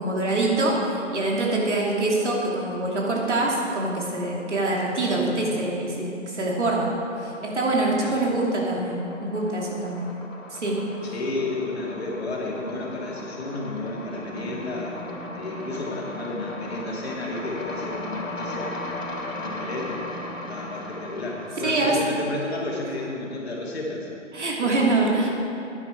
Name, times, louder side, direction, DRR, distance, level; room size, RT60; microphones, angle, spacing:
voice 1, 0.0-6.9 7.2-10.0 10.5-10.8 21.6-22.0 24.3-25.3, right 2 dB, 65° right, -2 dB, 2.7 m, -24 dB
voice 2, 5.1-5.6 7.9-8.2 11.0-18.7 19.3-24.1 24.6-25.2, left 2 dB, 55° left, -2 dB, 2.5 m, -32 dB
sound 1, 7.3-7.8 8.1-23.3, left 1 dB, 80° left, 1.8 m, -37 dB
12.0 x 9.8 x 4.6 m, 2.8 s
figure-of-eight pair, 140°, 38 cm